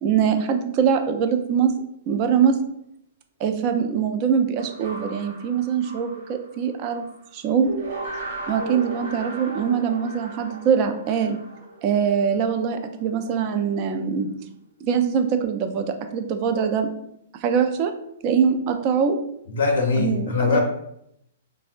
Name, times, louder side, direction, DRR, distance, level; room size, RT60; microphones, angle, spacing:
voice 1, 0.0-1.7 2.1-2.6 3.4-7.0 7.3-7.7 8.5-11.4 11.8-14.3 14.8-16.9 17.4-17.9 18.2-19.2 20.0-20.6, right 7 dB, 40° right, 7 dB, 0.4 m, -23 dB
sound 1, 4.6-7.2 7.6-12.7, right 2 dB, 75° right, 0.8 m, -36 dB
voice 2, 19.5-20.6, left 4 dB, 70° left, 1 dB, 0.5 m, -21 dB
3.5 x 2.0 x 2.4 m, 0.76 s
hypercardioid pair, 120°, 0 cm